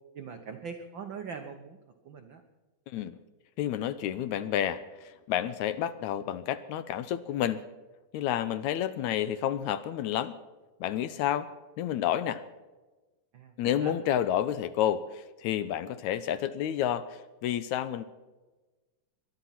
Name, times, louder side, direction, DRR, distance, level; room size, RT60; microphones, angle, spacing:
voice 1, 0.1-1.8 2.0-2.4 13.3-14.0, right 6 dB, 85° right, 6 dB, 1.0 m, -41 dB
voice 2, 2.9-3.2 3.6-7.6 8.1-10.4 10.8-11.5 11.8-12.4 13.6-18.0, left 10 dB, 80° left, 14 dB, 1.9 m, -30 dB
21.0 x 12.0 x 5.8 m, 1.2 s
omnidirectional pair, 3.7 m